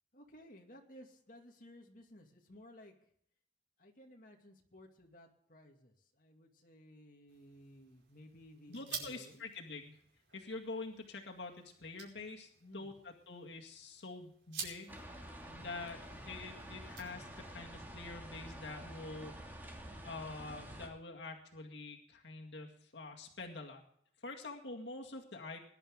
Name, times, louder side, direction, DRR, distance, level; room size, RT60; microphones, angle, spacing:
voice 1, 0.1-3.1 3.8-9.4 12.6-12.9 15.5-15.8, equal, 50° left, 1 dB, 2.3 m, -57 dB
sound 1, 7.3-17.6, right 6 dB, 80° right, 5.2 m, -51 dB
voice 2, 8.7-10.0 10.3-15.3 15.6-16.0 16.2-19.4 20.0-23.8 24.2-25.6, left 3 dB, 80° left, 1 dB, 2.1 m, -46 dB
sound 2, 14.9-20.9, right 1 dB, 10° right, 2.4 m, -49 dB
21.0 x 11.0 x 3.7 m, 0.68 s
head